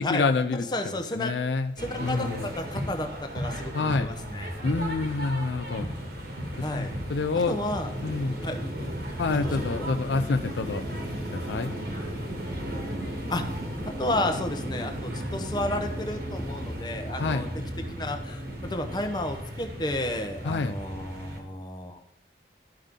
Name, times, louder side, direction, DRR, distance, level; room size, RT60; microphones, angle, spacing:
voice 1, 0.0-0.7 1.1-1.7 2.0-2.5 3.7-4.1 4.6-5.9 6.7-7.6 8.0-8.4 9.2-10.8 11.3-11.7 17.2-17.5 20.4-20.8, left 4 dB, 75° left, 8 dB, 0.5 m, -27 dB
voice 2, 0.5-1.3 1.8-4.5 6.6-6.9 7.5-7.9 8.4-8.6 9.4-9.9 13.3-13.4 14.0-17.5 17.9-22.0, left 1 dB, 25° left, 5 dB, 0.8 m, -32 dB
sound 1, 1.8-21.4, equal, 55° right, 1.7 m, -35 dB
13.0 x 5.5 x 3.6 m, 0.89 s
head